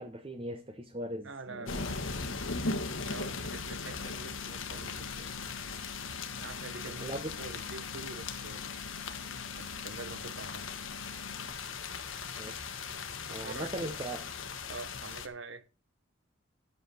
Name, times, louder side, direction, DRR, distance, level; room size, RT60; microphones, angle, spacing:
voice 1, 0.0-1.3 1.6-1.7 7.0-7.3 12.4-12.7 13.3-14.2, right 1 dB, 25° right, 0.8 m, -38 dB
voice 2, 1.2-1.9 3.0-5.4 6.4-8.8 9.6-10.7 13.3-14.0 14.7-15.7, right 3 dB, 70° right, 1.0 m, -46 dB
sound 1, 1.5-11.5, left 3 dB, 45° left, 1.6 m, -50 dB
sound 2, 1.7-15.3, left 4 dB, 85° left, 1.3 m, -39 dB
11.0 x 6.8 x 5.6 m
head